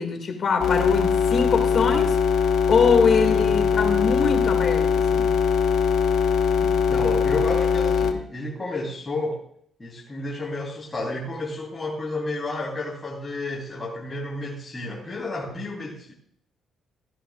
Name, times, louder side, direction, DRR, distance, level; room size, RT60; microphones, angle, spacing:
voice 1, 0.0-2.2 2.7-5.3, left 5 dB, 50° left, 2.3 m, -23 dB
sound 1, 0.6-8.1, left 6 dB, 70° left, 1.2 m, -21 dB
voice 2, 6.6-9.4 9.8-16.1, left 2 dB, 20° left, 3.6 m, -31 dB
15.5 x 11.0 x 2.5 m
cardioid pair, 90°, 0 cm